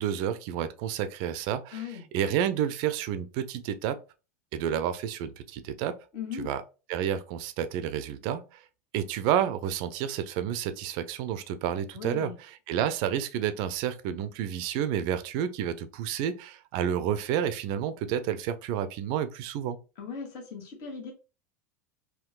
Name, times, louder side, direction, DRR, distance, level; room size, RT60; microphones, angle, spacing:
voice 1, 0.0-4.0 4.5-5.9 6.4-6.6 6.9-8.6 8.9-19.8, right 9 dB, 55° right, 0.4 m, -30 dB
voice 2, 1.7-2.0 6.1-6.5 11.9-12.4 20.0-21.1, left 7 dB, 55° left, 1.3 m, -38 dB
3.6 x 2.3 x 2.3 m
hypercardioid pair, 95°, 9 cm